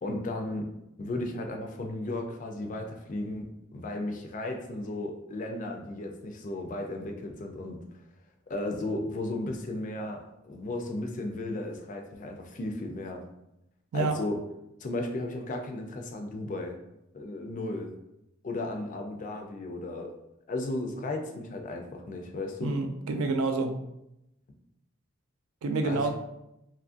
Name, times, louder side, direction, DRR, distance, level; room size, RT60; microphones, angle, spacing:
voice 1, 0.0-0.7 1.0-7.8 8.5-13.2 13.9-14.4 14.8-16.8 17.1-17.9 18.4-20.1 20.5-22.7 25.8-26.1, left 2 dB, 35° left, 3 dB, 0.3 m, -35 dB
voice 2, 22.6-23.7 25.6-26.1, right 3 dB, 75° right, 5 dB, 0.4 m, -28 dB
2.9 x 2.4 x 2.5 m, 0.86 s
head